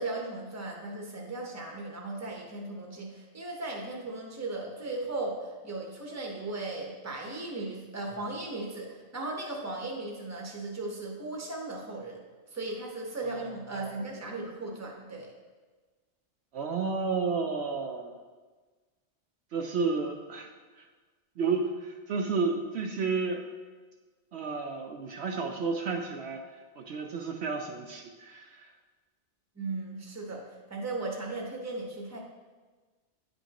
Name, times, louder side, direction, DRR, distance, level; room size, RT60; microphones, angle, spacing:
voice 1, 0.0-12.2 12.5-15.3 29.6-32.2, right 2 dB, 15° right, -1 dB, 0.9 m, -37 dB
voice 2, 13.7-14.1 16.5-18.1 19.5-20.5 20.8-20.9 21.4-23.4 24.3-26.4 26.8-28.7, right 4 dB, 70° right, 2 dB, 0.8 m, -31 dB
9.3 x 5.2 x 2.9 m, 1.3 s
omnidirectional pair, 1.2 m